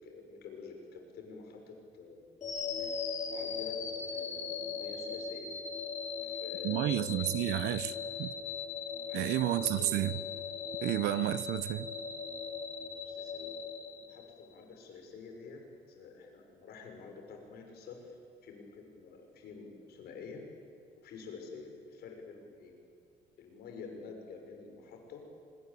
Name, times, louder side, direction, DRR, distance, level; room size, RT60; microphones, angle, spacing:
voice 1, 0.0-2.3 2.8-5.5 6.2-7.4 8.6-8.7 9.1-10.0 13.0-15.6 15.9-20.4 21.0-22.7 23.4-25.2, left 4 dB, 70° left, 6.0 m, -48 dB
sound 1, 2.4-14.5, left 6 dB, 45° left, 3.2 m, -39 dB
voice 2, 6.6-8.3 9.1-10.2 10.8-11.9, right 15 dB, 80° right, 0.9 m, -31 dB
25.5 x 22.0 x 8.5 m
cardioid pair, 110°, 17 cm